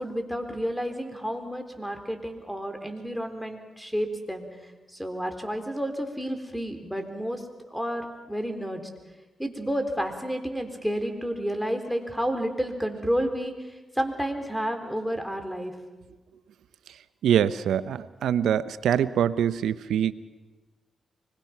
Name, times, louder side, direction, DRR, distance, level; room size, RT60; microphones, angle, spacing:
voice 1, 0.0-8.8 9.4-15.7, equal, ahead, 4 dB, 3.9 m, -31 dB
voice 2, 17.2-20.1, right 9 dB, 85° right, 15 dB, 0.7 m, -24 dB
25.0 x 22.0 x 6.0 m, 1.2 s
cardioid pair, 55°, 0 cm